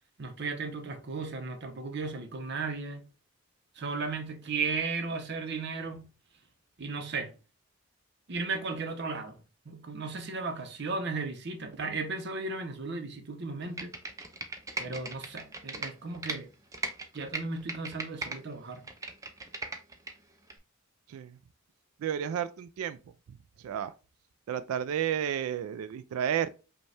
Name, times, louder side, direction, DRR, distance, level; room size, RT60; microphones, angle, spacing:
voice 1, 0.2-3.1 3.8-6.1 6.8-7.3 8.3-9.4 9.7-14.0 14.8-16.5 17.1-18.9, right 4 dB, 55° right, 0.7 m, -35 dB
Computer keyboard, 13.6-16.4 16.7-18.4 18.7-20.1 20.5-20.6, right 3 dB, 15° right, 0.4 m, -37 dB
voice 2, 21.1-21.4 22.0-23.0 23.3-23.9 24.5-26.5, right 9 dB, 90° right, 0.3 m, -32 dB
5.1 x 2.2 x 3.2 m
head